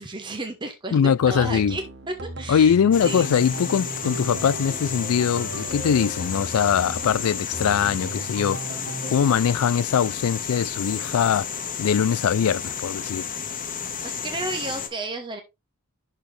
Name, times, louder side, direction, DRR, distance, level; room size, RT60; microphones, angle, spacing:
voice 1, 0.0-3.3 14.0-15.4, right 2 dB, 20° right, 1.1 m, -33 dB
voice 2, 0.9-1.8 2.5-8.6 9.1-11.5 11.8-13.3, left 7 dB, 90° left, 0.4 m, -22 dB
sound 1, 1.2-9.4, right 2 dB, 55° right, 1.2 m, -37 dB
sound 2, 2.9-14.9, left 7 dB, 40° left, 1.3 m, -32 dB
11.5 x 4.1 x 3.3 m
head